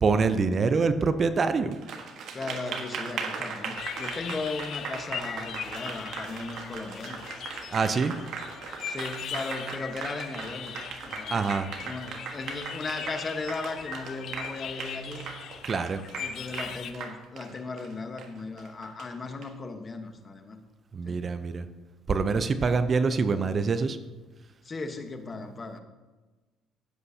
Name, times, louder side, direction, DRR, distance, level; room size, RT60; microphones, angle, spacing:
voice 1, 0.0-1.8 7.7-8.1 11.3-11.7 15.6-16.0 20.9-21.6 22.1-24.0, right 4 dB, 40° right, 10 dB, 0.6 m, -25 dB
Applause, 1.7-19.5, right 5 dB, 65° right, 1.4 m, -38 dB
voice 2, 2.3-7.2 8.8-10.8 11.1-11.4 11.8-15.3 16.2-20.6 21.1-21.3 24.6-25.8, left 3 dB, 35° left, 7 dB, 1.2 m, -37 dB
sound 1, 3.8-16.9, left 8 dB, 60° left, 0.8 m, -40 dB
15.5 x 7.8 x 2.8 m, 1.2 s
supercardioid pair, 85°, 0 cm